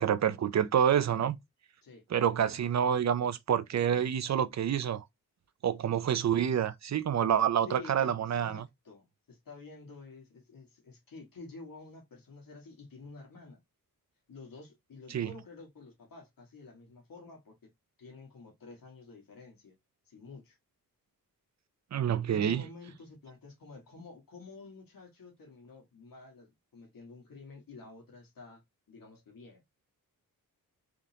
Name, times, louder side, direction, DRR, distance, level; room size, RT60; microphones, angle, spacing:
voice 1, 0.0-1.4 2.1-5.0 5.6-8.6 15.1-15.3 21.9-22.6, right 9 dB, 50° right, 0.5 m, -28 dB
voice 2, 7.7-13.6 14.3-17.6 18.0-19.8 20.0-20.6 22.2-28.6 28.9-29.6, left 3 dB, 70° left, 1.6 m, -50 dB
3.7 x 3.5 x 2.8 m
wide cardioid pair, 155°, 35 cm